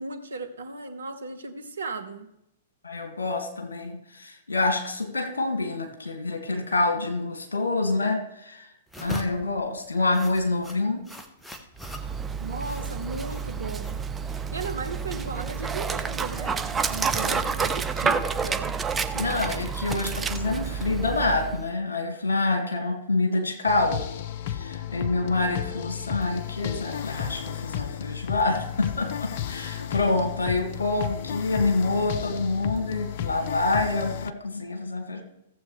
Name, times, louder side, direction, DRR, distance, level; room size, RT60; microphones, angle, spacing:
voice 1, 0.0-2.3 12.4-14.0 14.5-18.8 29.8-29.9, right 3 dB, 75° right, 8 dB, 1.1 m, -36 dB
voice 2, 2.8-8.6 9.0-11.0 17.2-17.4 19.1-24.0 24.5-35.2, left 3 dB, 75° left, 5 dB, 2.1 m, -27 dB
sound 1, 8.9-16.8, equal, 5° left, 1.1 m, -43 dB
Dog, 11.8-21.7, right 5 dB, 15° right, 0.6 m, -29 dB
sound 2, 23.7-34.3, left 10 dB, 50° left, 0.5 m, -33 dB
15.0 x 7.7 x 3.3 m, 0.84 s
figure-of-eight pair, 110°, 0 cm